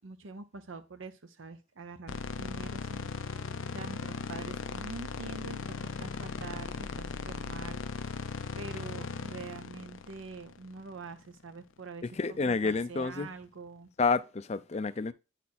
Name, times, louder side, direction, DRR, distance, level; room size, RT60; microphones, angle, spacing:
voice 1, 0.0-7.8 8.6-13.9, right 3 dB, 75° right, 0.7 m, -45 dB
sound 1, 2.1-11.3, left 4 dB, 80° left, 0.6 m, -38 dB
voice 2, 12.2-13.3 14.0-15.1, left 4 dB, 30° left, 0.4 m, -29 dB
9.6 x 4.2 x 4.2 m
head